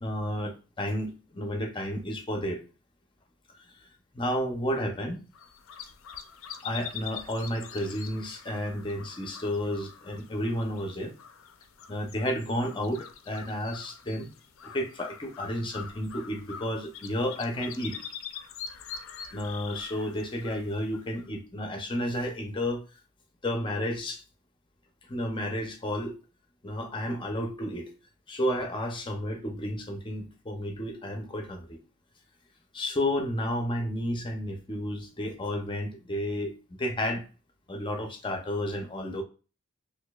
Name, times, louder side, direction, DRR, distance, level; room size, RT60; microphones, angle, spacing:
voice 1, 0.0-2.6 4.1-5.3 6.6-11.1 11.9-14.3 14.6-18.0 19.3-22.8 23.4-24.2 25.1-26.1 26.6-27.9 28.3-31.8 32.7-37.2 37.7-39.2, equal, 25° left, 3 dB, 0.6 m, -32 dB
sound 1, 5.3-21.4, left 7 dB, 80° left, 0.4 m, -44 dB
4.2 x 2.6 x 2.3 m, 0.34 s
head